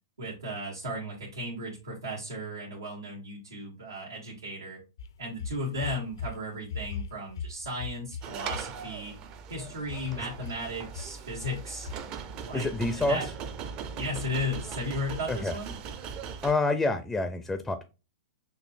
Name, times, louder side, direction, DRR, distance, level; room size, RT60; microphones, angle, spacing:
voice 1, 0.2-4.8 5.2-9.1 9.5-11.9 12.4-13.3 13.9-15.7, left 1 dB, 90° right, -6 dB, 1.7 m, -35 dB
sound 1, 5.0-6.4 6.6-8.6 9.9-10.6 10.9-11.1 11.4-11.6 11.9-12.0, left 5 dB, 70° left, 0.5 m, -38 dB
sound 2, 8.2-16.5, right 6 dB, 40° right, 0.6 m, -40 dB
voice 2, 12.5-13.2 15.3-15.6 16.4-17.8, left 2 dB, 10° left, 8 dB, 0.5 m, -27 dB
6.3 x 2.6 x 2.6 m, 0.30 s
hypercardioid pair, 115°, 2 cm